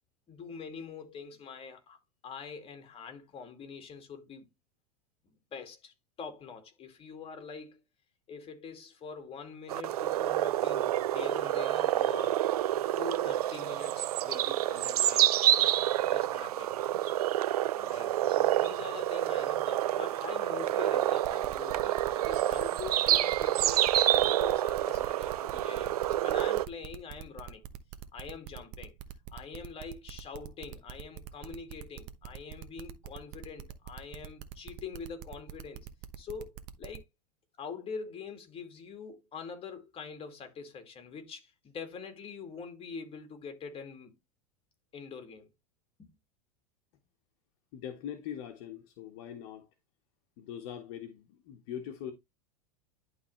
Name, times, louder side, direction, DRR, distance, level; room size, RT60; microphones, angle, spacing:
voice 1, 0.3-2.0 2.2-4.5 5.5-7.8 8.3-12.5 12.8-15.4 16.1-16.7 17.7-27.6 28.1-28.9 29.3-35.9 36.2-37.0 37.6-44.1 44.9-45.5 46.0-46.1, left 5 dB, 30° left, 2.4 m, -44 dB
sound 1, 9.7-26.7, right 13 dB, 75° right, 0.5 m, -28 dB
sound 2, 21.2-37.0, right 12 dB, 50° right, 1.1 m, -44 dB
voice 2, 47.7-49.7 50.4-52.1, left 9 dB, 55° left, 1.4 m, -42 dB
11.0 x 3.8 x 3.2 m
hypercardioid pair, 95°, 20 cm